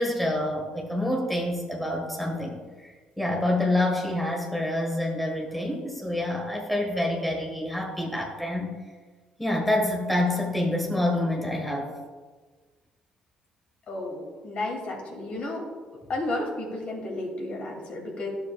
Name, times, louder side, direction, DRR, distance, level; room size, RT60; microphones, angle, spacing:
voice 1, 0.0-8.7 9.4-11.9, left 1 dB, ahead, -1 dB, 1.6 m, -27 dB
voice 2, 13.9-15.7 16.1-18.3, left 2 dB, 55° left, 0 dB, 2.4 m, -32 dB
11.5 x 7.0 x 2.4 m, 1.4 s
cardioid pair, 90°, 3 cm